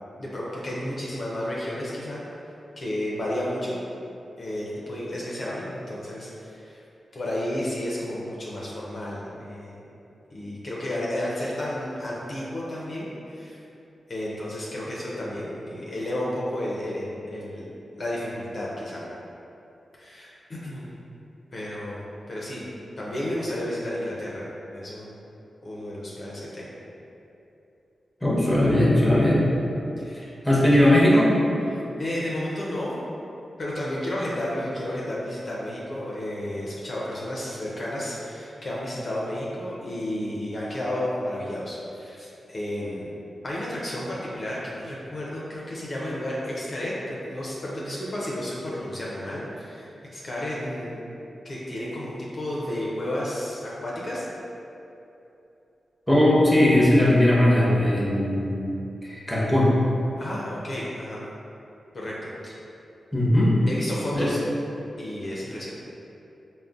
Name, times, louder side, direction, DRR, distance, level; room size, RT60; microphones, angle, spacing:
voice 1, 0.2-2.2 2.8-3.8 4.4-6.8 7.1-9.8 10.3-13.6 14.1-17.7 18.0-19.0 19.9-20.9 21.5-22.7 23.0-24.4 24.7-25.1 25.6-26.7 30.0-30.4 32.0-32.9 33.6-43.1 43.4-51.0 51.4-54.3 60.2-61.2 61.9-62.3 63.7-64.4 65.0-65.7, left 1 dB, 55° left, -6 dB, 0.5 m, -32 dB
voice 2, 28.2-29.4 30.4-31.3 56.1-58.5 59.0-59.7 63.1-63.5 64.1-64.3, left 1 dB, 5° left, -6 dB, 0.8 m, -19 dB
3.6 x 2.1 x 2.4 m, 2.8 s
cardioid pair, 50°, 0 cm